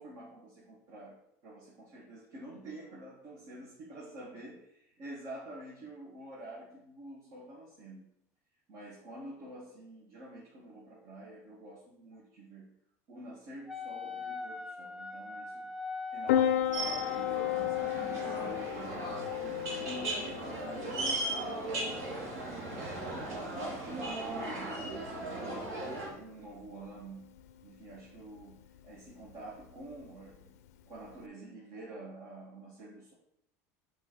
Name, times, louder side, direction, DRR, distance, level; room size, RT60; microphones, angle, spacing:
voice 1, 0.0-4.7 5.0-8.1 8.7-12.8 13.1-15.7 16.1-19.0 19.4-22.1 22.6-25.7 26.0-27.3 27.6-30.5 30.8-33.1, right 2 dB, 55° right, -5 dB, 1.9 m, -48 dB
Wind instrument woodwind instrument, 13.7-18.7, left 5 dB, ahead, 0.5 m, -41 dB
Piano, 16.3-31.3, left 11 dB, 85° left, 0.5 m, -37 dB
sound 1, 16.7-26.1, right 2 dB, 75° right, 2.1 m, -37 dB
6.0 x 3.2 x 5.4 m, 0.76 s
supercardioid pair, 100°, 8 cm